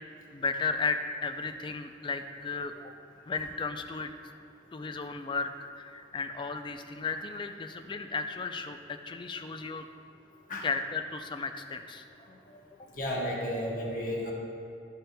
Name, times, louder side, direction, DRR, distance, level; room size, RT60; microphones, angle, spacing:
voice 1, 0.3-2.8 3.2-4.1 4.7-9.9 10.6-12.0, left 4 dB, 25° left, 8 dB, 0.3 m, -34 dB
voice 2, 12.9-14.3, equal, 50° left, -2 dB, 1.1 m, -32 dB
11.5 x 6.7 x 2.2 m, 2.7 s
head